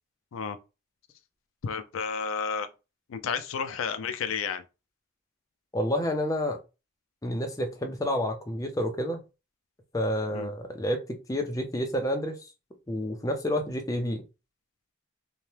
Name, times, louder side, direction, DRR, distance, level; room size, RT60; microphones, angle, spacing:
voice 1, 1.6-2.7 3.1-4.6 10.3-10.5, left 6 dB, 80° left, 0.4 m, -31 dB
voice 2, 5.7-6.6 7.2-9.2 9.9-12.4 12.9-14.2, equal, 15° left, 0.4 m, -29 dB
2.8 x 2.2 x 3.2 m
head